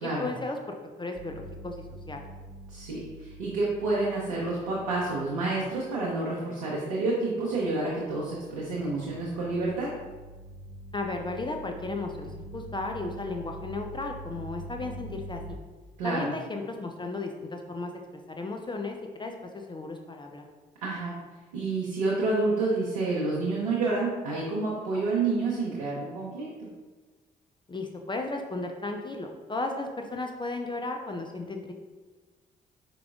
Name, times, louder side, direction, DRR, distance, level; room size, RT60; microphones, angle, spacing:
voice 1, 0.0-2.3 10.9-15.6 16.0-17.9 18.3-20.4 27.7-31.7, left 2 dB, 20° left, 3 dB, 0.5 m, -35 dB
sound 1, 1.1-6.3 6.7-15.5, right 1 dB, 30° right, 1.1 m, -45 dB
voice 2, 2.7-9.9 16.0-16.3 20.8-21.2 21.5-26.7, right 3 dB, 80° right, -4 dB, 0.6 m, -29 dB
4.7 x 3.7 x 2.3 m, 1.3 s
hypercardioid pair, 40°, 21 cm